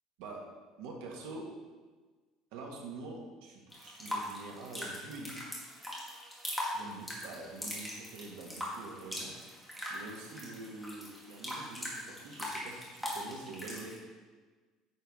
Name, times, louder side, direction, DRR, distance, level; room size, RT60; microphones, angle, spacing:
voice 1, 0.8-1.5 2.5-5.6 6.7-9.4 9.9-14.0, right 3 dB, 85° right, 0 dB, 1.8 m, -46 dB
sound 1, 3.7-14.0, equal, ahead, 1.6 m, -41 dB
9.1 x 4.6 x 5.1 m, 1.3 s
cardioid pair, 175°, 0 cm